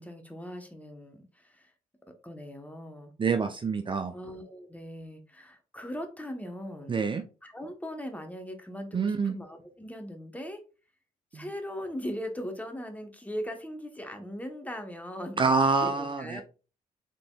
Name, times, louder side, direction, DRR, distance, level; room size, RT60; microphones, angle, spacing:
voice 1, 0.0-1.7 2.1-3.1 4.1-7.0 7.4-10.6 11.3-15.4 15.8-16.4, equal, 10° left, 5 dB, 1.0 m, -39 dB
voice 2, 3.2-4.1 6.9-7.2 8.9-9.3 11.3-11.4 15.4-16.4, right 4 dB, 30° right, 7 dB, 0.5 m, -26 dB
3.7 x 3.7 x 2.3 m, 0.34 s
supercardioid pair, 60°, 16 cm